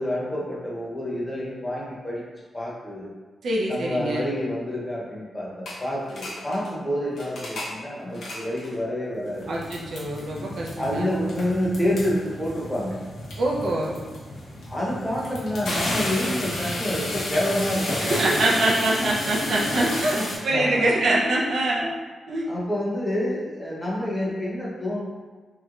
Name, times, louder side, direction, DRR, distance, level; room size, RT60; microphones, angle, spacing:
voice 1, 0.0-2.2 2.5-3.1 3.7-9.5 10.8-13.0 14.6-18.7 20.1-20.2 20.5-20.9 22.5-25.0, left 1 dB, 15° left, -6 dB, 0.8 m, -28 dB
voice 2, 3.4-4.3 9.5-11.1 13.4-14.0 18.0-21.9 22.3-22.4, right 1 dB, 70° right, -3 dB, 0.6 m, -24 dB
sound 1, 5.7-5.8 6.0-6.7 7.1-7.7 8.1-8.7 9.2-20.4, left 1 dB, 85° left, 0.9 m, -32 dB
3.2 x 3.1 x 2.4 m, 1.4 s
wide cardioid pair, 125°, 0 cm